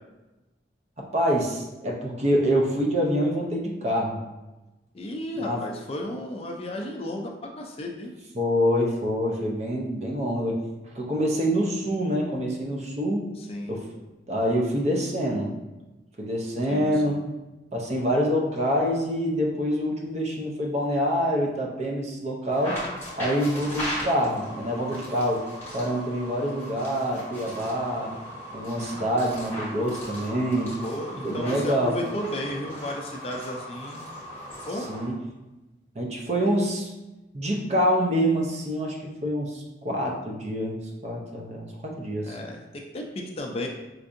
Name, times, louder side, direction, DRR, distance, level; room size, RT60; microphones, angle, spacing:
voice 1, 1.0-4.2 5.4-5.7 8.3-10.6 10.9-13.3 13.7-13.8 14.3-15.5 16.2-17.2 17.7-22.8 23.2-25.4 25.7-28.1 28.5-30.8 31.2-32.0 34.9-35.1 35.9-36.9 37.3-42.4, equal, 40° right, -1 dB, 0.6 m, -26 dB
voice 2, 4.9-8.1 13.4-13.8 16.7-17.2 30.8-34.0 34.7-34.9 42.2-43.7, left 1 dB, 35° left, 1 dB, 0.4 m, -34 dB
sound 1, 22.5-35.1, equal, 15° left, 1.0 m, -38 dB
4.5 x 2.6 x 2.5 m, 1.0 s
head